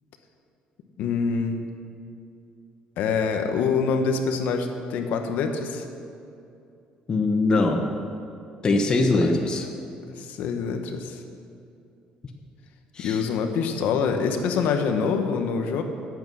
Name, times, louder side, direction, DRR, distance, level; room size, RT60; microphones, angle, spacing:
voice 1, 1.0-1.6 3.0-5.8 9.2-9.4 10.2-11.2 13.0-15.8, left 5 dB, 75° left, 5 dB, 1.2 m, -25 dB
voice 2, 7.1-7.8 8.6-9.7 12.9-13.2, left 2 dB, 30° left, 3 dB, 1.0 m, -22 dB
16.5 x 8.2 x 6.3 m, 2.6 s
cardioid pair, 145°, 3 cm